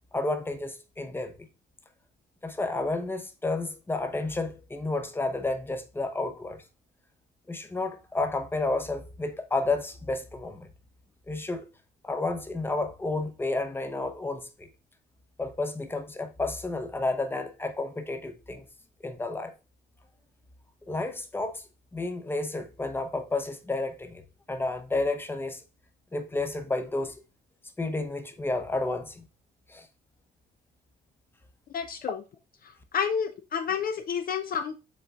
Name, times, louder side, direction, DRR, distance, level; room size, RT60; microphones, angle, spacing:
voice 1, 0.1-1.5 2.4-6.6 7.5-10.7 11.3-11.6 12.0-14.7 15.4-18.6 19.0-19.5 20.9-21.6 21.9-24.2 24.5-25.6 26.1-27.1 27.8-29.2 29.7-29.9, left 2 dB, 10° left, 0.6 m, -31 dB
voice 2, 31.7-32.2 32.6-34.8, left 7 dB, 50° left, 0.4 m, -30 dB
5.3 x 3.8 x 2.3 m
cardioid pair, 90°, 20 cm